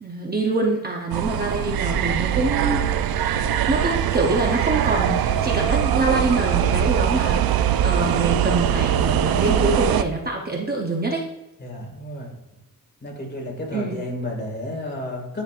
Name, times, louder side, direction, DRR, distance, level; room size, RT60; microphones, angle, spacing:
voice 1, 0.0-2.8 3.2-11.2 13.7-14.0, right 3 dB, 25° right, 0 dB, 0.7 m, -25 dB
sound 1, 1.1-10.0, right 9 dB, 90° right, 0.5 m, -22 dB
voice 2, 11.6-12.3 13.0-15.4, left 1 dB, 30° left, -1 dB, 2.0 m, -32 dB
9.9 x 5.4 x 2.4 m, 0.98 s
wide cardioid pair, 145°, 35 cm